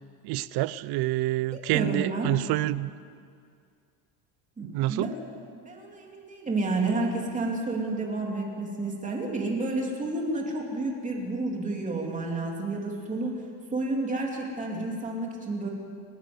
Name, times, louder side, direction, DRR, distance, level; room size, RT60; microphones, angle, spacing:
voice 1, 0.2-2.9 4.6-5.1, right 16 dB, 55° right, 18 dB, 0.7 m, -27 dB
voice 2, 1.5-2.3 4.6-5.1 5.6-13.3 13.7-15.7, right 2 dB, 15° right, 0 dB, 3.2 m, -30 dB
30.0 x 11.0 x 8.0 m, 2.2 s
cardioid pair, 155°, 46 cm